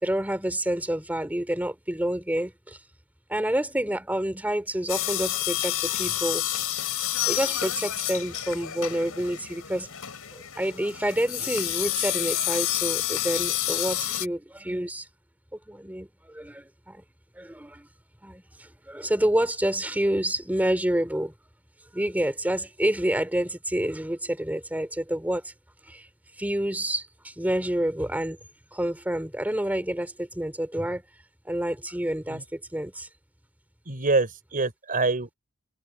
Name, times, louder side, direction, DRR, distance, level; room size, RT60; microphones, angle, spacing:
voice 1, 0.0-2.8 3.3-6.4 7.2-9.9 10.3-15.1 15.7-17.0 17.3-17.9 18.2-21.3 21.9-25.5 25.8-26.1 26.4-28.4 28.7-31.0 31.4-33.1, right 1 dB, 10° right, 3.0 m, -28 dB
sound 1, 4.9-14.3, left 13 dB, 70° left, 7.6 m, -29 dB
voice 2, 33.9-35.4, right 3 dB, 40° right, 4.3 m, -25 dB
head